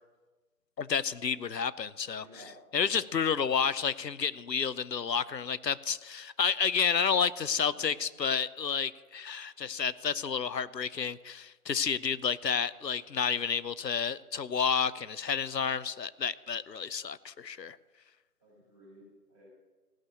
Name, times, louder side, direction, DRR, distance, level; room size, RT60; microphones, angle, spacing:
voice 1, 0.8-17.8, left 6 dB, 90° left, 17 dB, 0.7 m, -30 dB
voice 2, 2.2-2.6 7.5-7.9 18.4-19.5, equal, 10° right, -16 dB, 3.7 m, -54 dB
16.0 x 6.6 x 6.9 m, 1.3 s
figure-of-eight pair, 170°, 49 cm